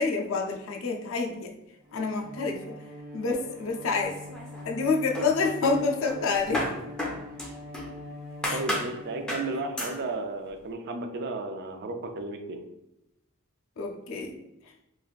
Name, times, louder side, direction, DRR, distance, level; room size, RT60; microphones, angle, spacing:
voice 1, 0.0-1.5 1.9-2.9 3.1-4.2 4.6-6.7 8.4-8.6 13.8-14.4 14.6-14.7, left 4 dB, 65° left, 2 dB, 0.4 m, -28 dB
Bowed string instrument, 1.8-10.2, left 1 dB, 10° right, 1.1 m, -43 dB
sound 1, 4.0-4.8 5.1-7.9 8.4-8.9 9.3-9.5 9.8-10.0, left 1 dB, 5° left, 0.5 m, -33 dB
voice 2, 8.5-12.6, right 2 dB, 50° right, 5 dB, 0.4 m, -34 dB
3.1 x 2.5 x 2.4 m, 0.90 s
head